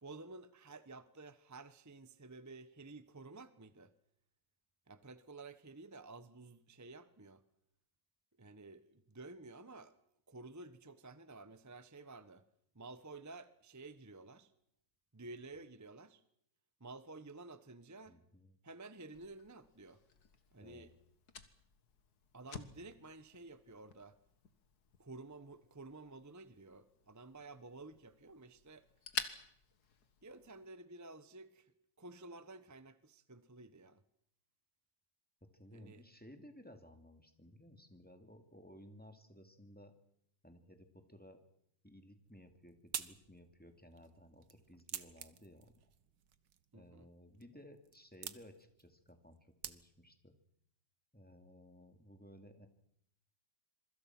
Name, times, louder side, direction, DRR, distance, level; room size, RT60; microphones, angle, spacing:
voice 1, 0.0-3.9 4.9-7.4 8.4-9.9 10.3-12.4 12.7-14.5 15.1-16.2 16.8-18.2 18.6-20.0 20.5-20.9 22.3-24.2 25.0-28.8 30.2-31.7 32.0-34.0 35.7-36.0 46.7-47.1, right 3 dB, 15° right, 13 dB, 0.8 m, -52 dB
voice 2, 18.1-18.6 20.6-20.9 35.4-39.9 40.4-41.4 41.8-45.7 46.7-50.3 51.1-52.7, equal, 5° left, 7 dB, 2.3 m, -58 dB
Fire, 19.1-30.7, left 6 dB, 55° left, 2.0 m, -50 dB
sound 1, 42.2-50.2, right 9 dB, 70° right, 1.8 m, -50 dB
26.5 x 24.0 x 6.1 m, 0.73 s
omnidirectional pair, 2.0 m